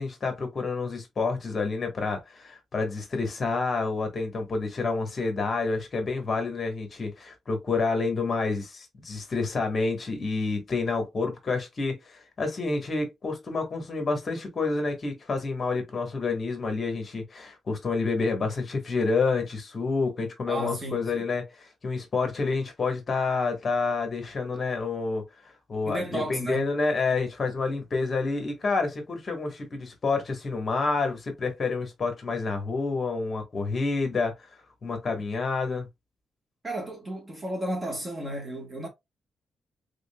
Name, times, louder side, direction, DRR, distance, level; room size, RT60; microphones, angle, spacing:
voice 1, 0.0-34.6 34.8-35.9, left 4 dB, 35° left, 1.3 m, -29 dB
voice 2, 20.5-21.0 25.8-26.7 36.6-38.9, right 1 dB, 20° right, 1.3 m, -33 dB
3.7 x 3.5 x 2.3 m
cardioid pair, 130°, 0 cm